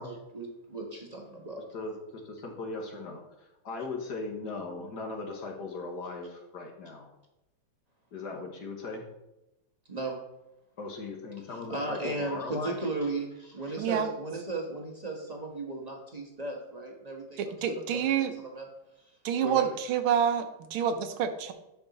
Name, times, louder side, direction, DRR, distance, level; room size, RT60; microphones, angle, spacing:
voice 1, 0.0-1.6 9.9-10.2 11.5-18.7 19.0-19.6, right 2 dB, 25° right, 1 dB, 1.0 m, -36 dB
voice 2, 1.7-7.1 8.1-9.0 10.8-12.8, left 3 dB, 60° left, 2 dB, 1.7 m, -38 dB
voice 3, 13.8-14.1 17.4-18.3 19.2-20.5 20.7-21.5, right 8 dB, 90° right, 8 dB, 1.6 m, -27 dB
11.0 x 4.8 x 4.1 m, 0.93 s
omnidirectional pair, 2.2 m